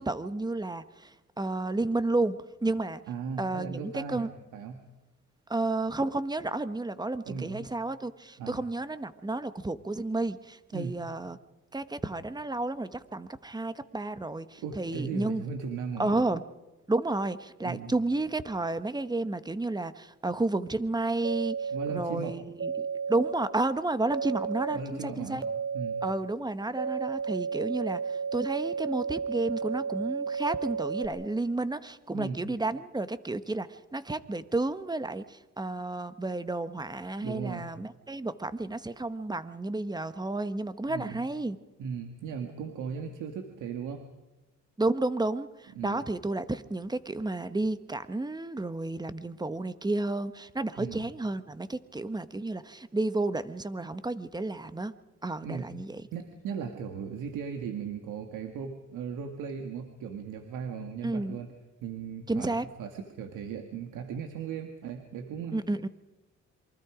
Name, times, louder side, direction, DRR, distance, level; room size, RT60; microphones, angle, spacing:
voice 1, 0.0-3.0 3.4-4.3 5.5-11.4 11.7-15.4 16.0-16.5 16.9-25.4 26.0-41.6 44.8-54.9 55.2-56.0 61.0-61.4 62.3-62.7 65.5-65.9, right 2 dB, 15° right, 12 dB, 1.3 m, -31 dB
voice 2, 3.1-4.8 7.3-7.7 8.4-8.6 10.7-11.0 14.6-16.1 17.6-17.9 21.7-22.4 24.7-25.5 25.7-26.0 32.1-32.4 37.2-37.7 40.9-41.3 41.8-44.0 45.8-46.1 50.8-51.0 55.4-55.7 56.1-61.5 61.8-65.6, right 6 dB, 85° right, 5 dB, 2.0 m, -37 dB
sound 1, 21.2-22.0 22.6-23.3 24.1-24.8 25.4-26.1 26.8-31.1, right 5 dB, 50° right, 2.5 m, -32 dB
27.5 x 24.0 x 5.1 m, 1.1 s
cardioid pair, 90°, 30 cm